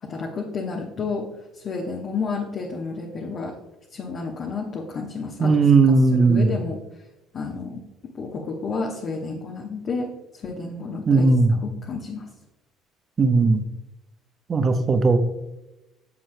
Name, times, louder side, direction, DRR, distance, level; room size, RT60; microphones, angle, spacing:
voice 1, 0.0-1.3 1.5-3.5 3.9-5.6 5.8-6.8 7.3-7.9 8.1-11.3 11.6-12.3, left 4 dB, 45° left, -1 dB, 1.2 m, -31 dB
voice 2, 5.4-6.5 11.1-11.6 13.2-13.6 14.5-15.2, right 3 dB, 35° right, 8 dB, 0.9 m, -17 dB
9.7 x 7.2 x 2.2 m, 0.98 s
figure-of-eight pair, 55°, 0 cm